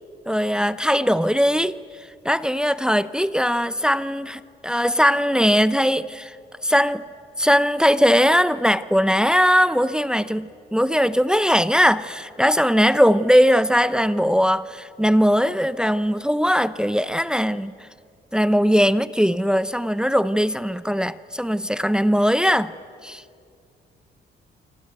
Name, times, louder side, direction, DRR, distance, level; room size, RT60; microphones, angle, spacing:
voice 1, 0.3-1.7 2.2-6.4 6.6-7.0 7.4-17.7 18.3-22.7 23.0-23.2, equal, 5° right, 15 dB, 0.7 m, -20 dB
27.5 x 26.5 x 8.0 m, 2.3 s
cardioid pair, 90°, 20 cm